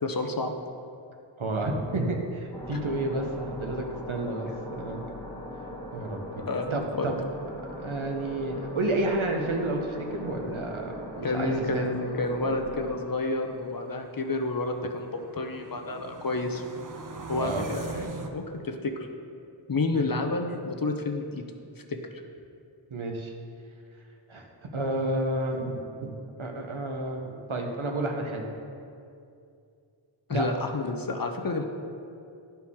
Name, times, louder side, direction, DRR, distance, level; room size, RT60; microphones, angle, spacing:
voice 1, 0.0-0.5 2.7-2.8 6.5-7.1 11.2-16.6 17.3-18.9 19.7-21.4 21.9-22.0 30.3-31.7, left 2 dB, 45° left, 4 dB, 0.7 m, -30 dB
voice 2, 1.4-5.0 5.9-6.2 6.7-7.2 7.7-11.9 17.4-17.7 19.9-20.1 22.9-23.3 24.3-26.1 26.4-28.5 30.3-30.5, right 2 dB, 75° right, 2 dB, 0.9 m, -30 dB
sound 1, 2.5-12.9, equal, 10° left, 1.4 m, -40 dB
sound 2, 11.2-18.3, right 4 dB, 40° right, 0.6 m, -43 dB
11.0 x 4.4 x 3.6 m, 2.5 s
wide cardioid pair, 40°, 49 cm